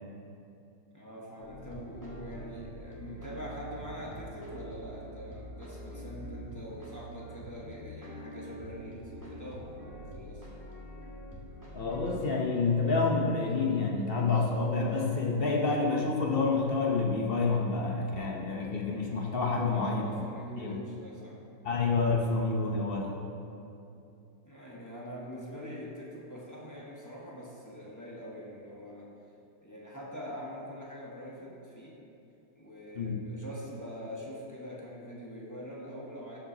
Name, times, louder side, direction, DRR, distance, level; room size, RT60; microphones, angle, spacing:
voice 1, 0.9-10.5 19.4-21.4 24.4-29.1 29.6-32.0 32.6-36.4, equal, 10° left, -5 dB, 1.0 m, -44 dB
sound 1, 1.4-12.2, equal, 10° right, 1.5 m, -45 dB
voice 2, 11.7-20.0 20.6-20.8 21.6-23.1 32.9-33.2, left 4 dB, 55° left, -1 dB, 0.6 m, -28 dB
14.0 x 7.8 x 2.8 m, 2.8 s
omnidirectional pair, 2.1 m